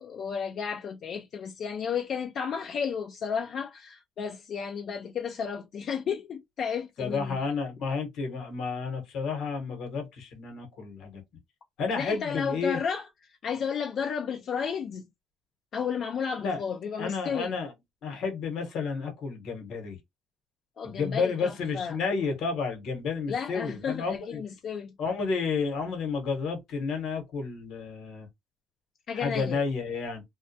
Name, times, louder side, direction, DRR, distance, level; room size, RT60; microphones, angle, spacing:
voice 1, 0.0-7.4 11.9-13.0 13.4-15.0 15.7-17.6 20.8-22.0 23.3-24.9 29.1-29.6, left 6 dB, 60° left, 0.3 m, -33 dB
voice 2, 7.0-11.2 11.8-12.8 16.4-16.6 17.0-17.7 18.0-20.0 20.8-24.4 25.0-28.3 29.1-30.2, left 5 dB, 75° left, 1.0 m, -31 dB
2.2 x 2.1 x 2.7 m
cardioid pair, 95°, 0 cm